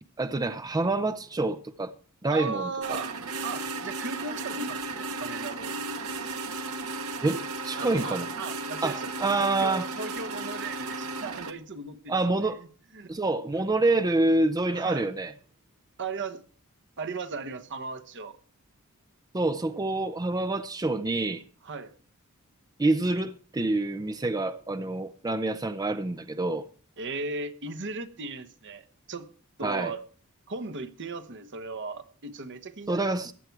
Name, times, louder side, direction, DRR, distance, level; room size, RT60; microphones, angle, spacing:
voice 1, 0.2-1.9 2.2-3.0 7.2-8.3 8.8-9.9 12.1-12.6 13.1-15.3 19.3-21.4 22.8-26.6 29.6-29.9 32.9-33.3, right 2 dB, 15° right, 0.5 m, -27 dB
voice 2, 2.3-5.7 7.8-9.1 9.4-12.7 12.9-13.1 13.5-13.6 14.7-15.1 16.0-16.4 17.0-18.4 21.6-21.9 27.0-29.3 29.6-30.0 30.5-33.1, right 4 dB, 55° right, 1.1 m, -37 dB
sound 1, 2.8-11.5, right 3 dB, 75° right, 1.6 m, -35 dB
15.0 x 10.5 x 4.6 m
head